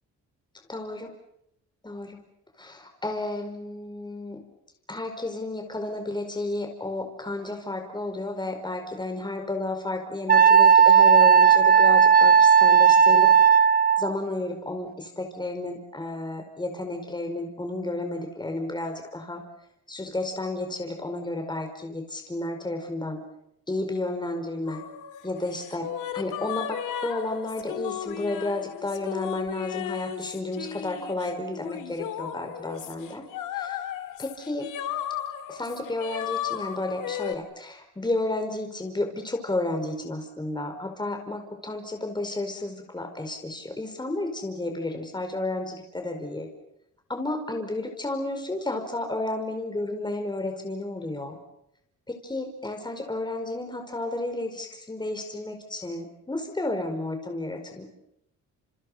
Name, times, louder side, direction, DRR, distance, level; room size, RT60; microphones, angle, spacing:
voice 1, 0.7-1.1 1.8-2.2 2.6-4.4 4.9-13.3 14.0-19.4 19.9-23.2 23.7-24.8 25.2-25.9 26.1-33.2 33.5-33.8 34.2-34.7 35.5-46.5 47.1-51.4 52.1-57.8, left 2 dB, 15° left, 4 dB, 4.9 m, -32 dB
Wind instrument woodwind instrument, 10.3-14.1, right 7 dB, 30° right, 1.0 m, -15 dB
sound 1, 24.7-37.3, left 10 dB, 85° left, 2.2 m, -35 dB
29.5 x 28.5 x 5.7 m, 0.80 s
cardioid pair, 90°, 30 cm